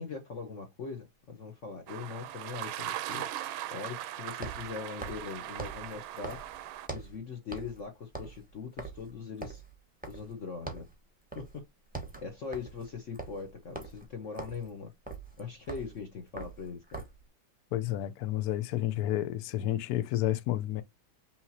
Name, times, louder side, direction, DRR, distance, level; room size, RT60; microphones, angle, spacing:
voice 1, 0.0-3.3 3.7-6.4 6.9-9.6 10.0-10.9 11.3-11.6 12.2-14.9 15.4-17.0, left 5 dB, 55° left, 0.9 m, -41 dB
sound 1, 1.0-1.1 4.3-7.2 7.5-10.4 10.7-11.0 11.3-11.6 11.8-17.3, right 3 dB, 10° right, 0.5 m, -43 dB
sound 2, 1.9-6.9, right 13 dB, 80° right, 1.4 m, -39 dB
voice 2, 17.7-20.8, left 13 dB, 90° left, 0.8 m, -30 dB
5.7 x 2.9 x 2.7 m
omnidirectional pair, 2.2 m